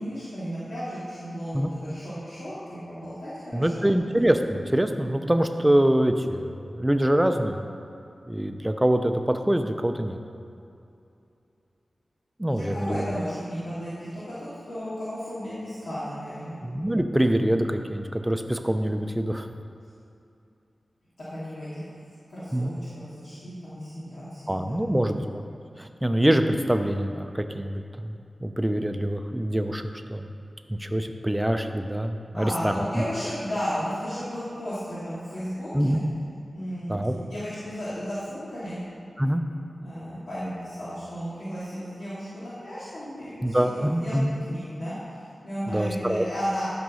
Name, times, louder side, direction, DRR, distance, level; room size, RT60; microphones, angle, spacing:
voice 1, 0.0-3.8 4.1-4.2 12.4-16.6 21.3-21.8 22.3-25.2 32.3-36.0 36.5-38.8 39.8-44.2 44.5-46.7, equal, 80° left, -12 dB, 2.7 m, -34 dB
voice 2, 3.5-7.6 8.3-10.2 12.4-13.1 16.6-19.5 22.5-22.8 24.5-25.2 25.8-28.1 28.4-30.3 30.8-32.9 35.7-36.0 36.9-37.1 39.2-39.4 43.4-44.3 45.7-46.3, right 1 dB, 10° right, 6 dB, 0.7 m, -24 dB
12.5 x 5.2 x 6.3 m, 2.6 s
wide cardioid pair, 80°, 0 cm